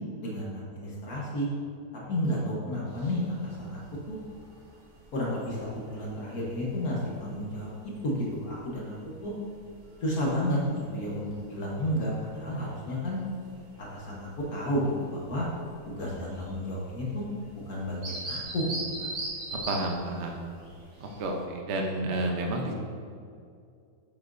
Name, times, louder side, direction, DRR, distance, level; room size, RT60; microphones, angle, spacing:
voice 1, 0.2-1.5 2.1-3.8 4.1-4.2 5.1-7.7 8.0-8.9 9.2-9.3 10.0-13.2 13.9-15.5 15.9-17.2 17.5-19.1, equal, 60° left, -5 dB, 1.7 m, -31 dB
sound 1, 2.9-21.4, right 2 dB, 75° right, 2.4 m, -44 dB
voice 2, 19.5-20.4 21.0-22.7, right 1 dB, 50° right, 1 dB, 1.0 m, -30 dB
8.6 x 7.5 x 2.6 m, 2.4 s
omnidirectional pair, 1.8 m